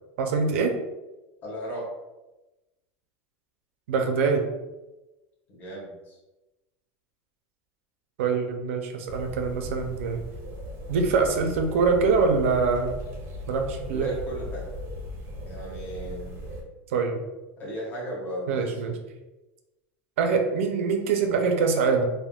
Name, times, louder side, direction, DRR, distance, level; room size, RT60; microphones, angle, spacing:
voice 1, 0.2-0.8 3.9-4.4 8.2-10.2 10.9-13.0 13.5-14.1 16.9-17.2 18.5-18.9 20.2-22.1, right 4 dB, 85° right, 4 dB, 0.5 m, -24 dB
voice 2, 1.4-1.9 5.5-6.2 13.9-14.6 15.4-16.4 17.6-19.0, right 1 dB, 25° left, -6 dB, 0.9 m, -35 dB
sound 1, 9.1-16.6, equal, 30° right, 0.5 m, -38 dB
3.5 x 2.1 x 2.3 m, 1.0 s
supercardioid pair, 160°, 7 cm